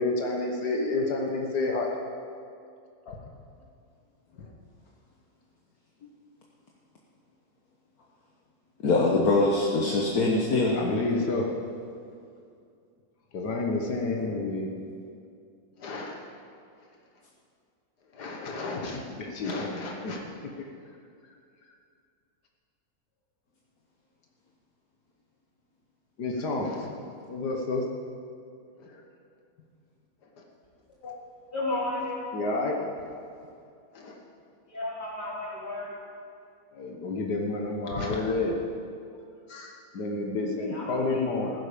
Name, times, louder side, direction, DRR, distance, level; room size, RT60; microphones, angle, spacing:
voice 1, 0.0-1.9 4.4-4.5 10.7-11.5 13.3-14.7 15.8-16.2 18.1-20.2 26.2-27.8 28.8-29.0 31.0-31.2 32.3-32.8 33.1-33.2 33.9-34.2 36.7-38.5 39.5-41.5, left 2 dB, 85° left, 0 dB, 1.9 m, -30 dB
voice 2, 8.8-10.8, left 2 dB, 65° left, -2 dB, 1.8 m, -23 dB
voice 3, 31.5-32.2 34.7-35.9 40.6-41.2, left 2 dB, 30° left, -7 dB, 4.0 m, -33 dB
15.5 x 13.0 x 5.2 m, 2.4 s
omnidirectional pair, 1.7 m